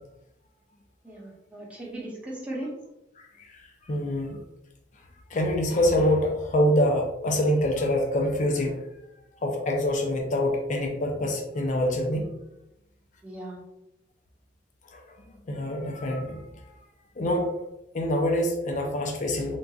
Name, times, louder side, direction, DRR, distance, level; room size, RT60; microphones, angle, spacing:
voice 1, 1.0-2.7 13.2-13.6, right 1 dB, 5° right, -5 dB, 0.8 m, -37 dB
voice 2, 3.9-4.4 5.3-8.8 9.4-12.3 14.9-15.0 15.5-16.4 17.2-17.5 17.9-19.6, left 1 dB, 45° left, 2 dB, 0.5 m, -25 dB
3.8 x 2.4 x 2.3 m, 0.89 s
head